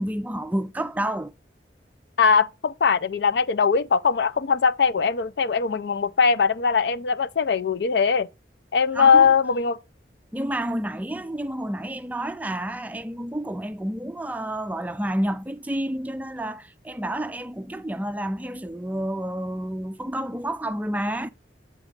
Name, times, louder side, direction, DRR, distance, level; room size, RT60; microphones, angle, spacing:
voice 1, 0.0-1.3 8.9-9.3 10.3-21.3, right 1 dB, 10° right, 0.3 m, -29 dB
voice 2, 2.2-8.3 8.7-9.8, left 5 dB, 75° left, 0.5 m, -20 dB
8.3 x 4.1 x 5.0 m
head